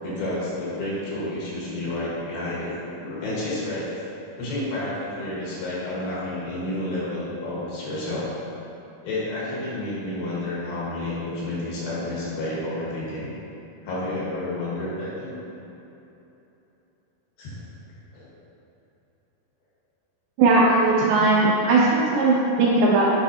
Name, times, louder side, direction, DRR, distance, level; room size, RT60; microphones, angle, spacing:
voice 1, 0.0-3.9 4.4-8.3 9.0-13.3 13.8-15.4 17.4-17.6 18.1-18.3, left 1 dB, 70° left, -8 dB, 3.1 m, -30 dB
voice 2, 20.4-23.2, right 3 dB, 85° right, -4 dB, 2.2 m, -18 dB
8.1 x 4.9 x 2.8 m, 3.0 s
omnidirectional pair, 4.7 m